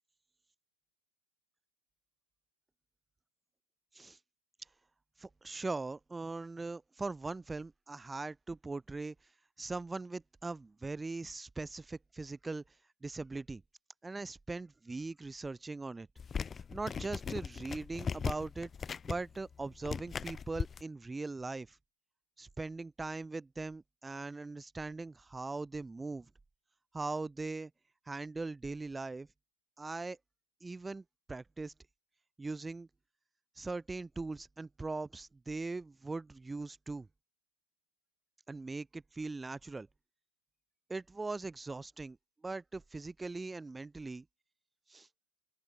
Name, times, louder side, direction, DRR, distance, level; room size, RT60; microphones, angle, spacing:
voice 1, 5.2-9.1 9.6-12.6 13.0-13.6 14.0-16.1 16.7-18.7 19.0-21.8 22.4-26.3 26.9-27.7 28.1-29.3 29.8-30.2 30.6-31.7 32.4-32.9 33.6-37.1 38.5-39.9 40.9-42.2 42.4-44.2 44.9-45.1, right 3 dB, 10° right, 0.7 m, -40 dB
sound 1, 16.2-20.8, left 6 dB, 20° left, 0.3 m, -39 dB
open air
figure-of-eight pair, 90°, 0 cm